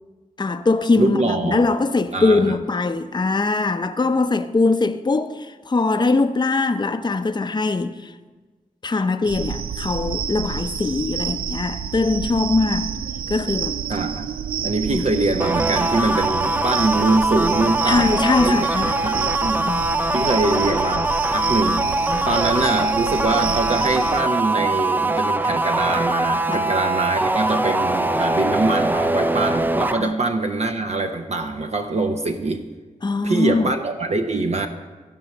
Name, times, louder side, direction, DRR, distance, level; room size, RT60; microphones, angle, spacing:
voice 1, 0.4-8.1 8.8-12.9 13.3-13.8 14.9-15.1 17.9-19.0 19.6-20.1 22.0-22.2 26.5-26.6 30.0-30.1 33.0-33.7, left 3 dB, 30° left, 0.6 m, -21 dB
voice 2, 1.0-1.7 2.1-2.5 13.9-14.3 14.6-19.7 20.1-32.6 33.2-34.7, right 2 dB, 50° right, 0.7 m, -23 dB
sound 1, 9.2-24.2, right 8 dB, 90° right, 0.4 m, -29 dB
sound 2, 15.4-30.0, right 2 dB, 15° right, 0.5 m, -22 dB
15.0 x 5.4 x 6.0 m
cardioid pair, 45°, 15 cm